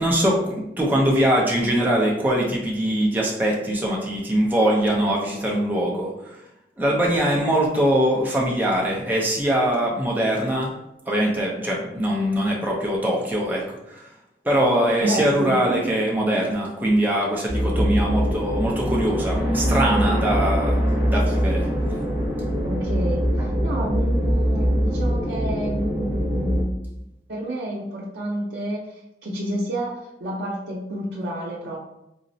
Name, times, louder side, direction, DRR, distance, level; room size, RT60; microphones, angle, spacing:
voice 1, 0.0-6.4 6.8-10.7 11.1-14.1 14.4-20.8 21.1-21.7, right 1 dB, 10° right, -3 dB, 0.5 m, -22 dB
voice 2, 15.0-15.9 16.3-16.4 22.6-23.3 23.6-26.8 27.3-28.8 29.2-31.8, right 1 dB, 80° right, -5 dB, 0.6 m, -29 dB
sound 1, 17.5-26.6, equal, 35° right, 1.0 m, -23 dB
3.8 x 2.1 x 2.6 m, 0.86 s
head